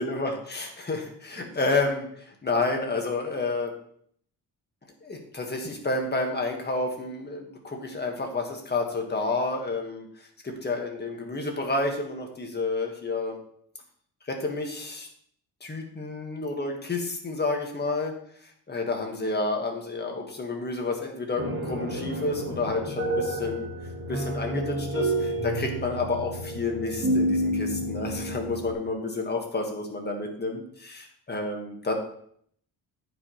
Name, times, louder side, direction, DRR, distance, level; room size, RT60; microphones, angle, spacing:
voice 1, 0.0-3.7 5.0-10.1 10.4-13.4 14.3-15.1 15.6-18.1 18.7-23.7 24.1-31.9, left 3 dB, 25° left, 2 dB, 1.5 m, -30 dB
sound 1, 21.4-28.7, right 1 dB, 30° right, 1.1 m, -29 dB
14.0 x 5.3 x 3.1 m, 0.64 s
wide cardioid pair, 160°, 39 cm